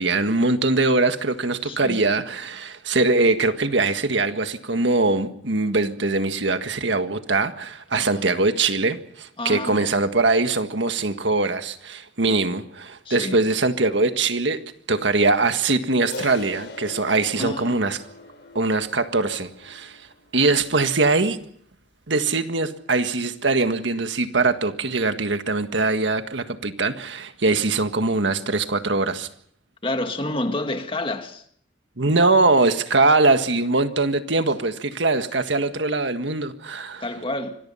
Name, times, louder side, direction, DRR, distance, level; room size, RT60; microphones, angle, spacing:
voice 1, 0.0-14.6 14.9-18.0 18.5-20.0 20.3-21.4 22.1-29.3 32.0-37.0, right 3 dB, 80° right, 1.7 m, -22 dB
voice 2, 1.6-2.0 8.0-8.3 9.4-9.9 13.1-13.4 17.4-17.8 29.8-31.4 37.0-37.6, left 2 dB, 30° left, 1.9 m, -29 dB
Crash cymbal, 16.1-20.6, left 2 dB, 65° left, 4.3 m, -40 dB
26.0 x 21.5 x 5.7 m
head